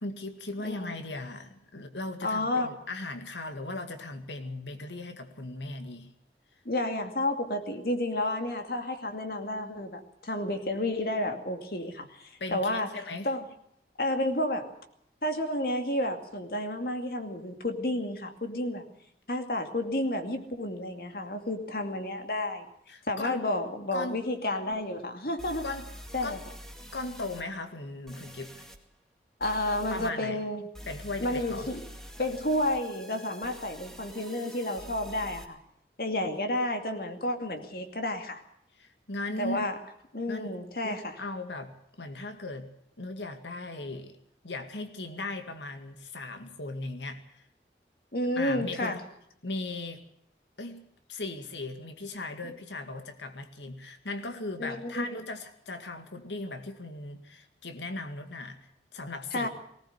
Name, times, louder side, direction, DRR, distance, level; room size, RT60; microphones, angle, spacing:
voice 1, 0.0-6.1 12.4-13.3 22.9-23.4 23.9-24.2 25.6-25.9 26.2-26.4 26.9-28.7 29.9-30.4 30.9-31.7 38.8-39.7 40.3-40.5 40.8-42.7 43.0-44.2 44.4-47.4 48.4-49.0 49.4-50.0 50.6-50.8 51.1-58.6 58.9-59.5, left 2 dB, 90° left, 8 dB, 2.1 m, -38 dB
voice 2, 0.6-0.9 2.2-2.7 6.6-13.5 14.0-14.7 15.2-18.8 19.3-22.7 23.1-25.6 26.1-26.4 29.4-30.6 31.2-31.8 32.2-35.6 36.0-38.4 39.4-39.8 40.1-41.2 48.1-49.0 54.6-55.1 59.3-59.5, left 1 dB, 55° left, 6 dB, 2.5 m, -31 dB
sound 1, 24.7-24.8 25.4-27.4 28.1-28.8 29.4-30.1 30.7-35.4, equal, 5° left, 2.0 m, -46 dB
19.5 x 18.0 x 8.1 m, 0.72 s
head